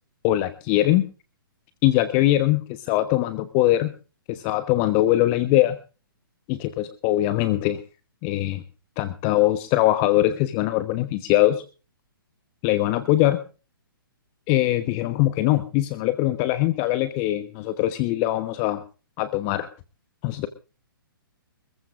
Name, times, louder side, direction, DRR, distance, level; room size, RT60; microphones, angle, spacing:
voice 1, 0.2-1.1 1.8-3.9 4.3-5.8 6.5-7.8 8.2-8.6 9.0-11.6 12.6-13.4 14.5-18.8 19.2-19.7 20.2-20.5, left 15 dB, 30° left, 11 dB, 1.1 m, -22 dB
24.0 x 15.0 x 2.6 m, 0.34 s
hypercardioid pair, 135°, 12 cm